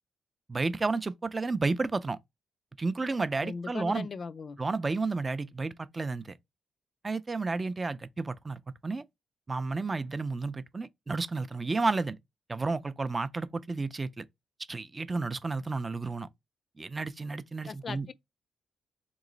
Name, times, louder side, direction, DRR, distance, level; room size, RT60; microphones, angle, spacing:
voice 1, 0.5-2.2 2.8-4.1 4.6-6.3 7.0-9.0 9.5-12.2 12.5-14.3 14.7-16.3 16.8-18.1, right 3 dB, 25° right, 0.4 m, -31 dB
voice 2, 3.4-4.6 17.7-18.1, left 5 dB, 50° left, 0.3 m, -38 dB
3.1 x 2.9 x 3.8 m
cardioid pair, 85°, 0 cm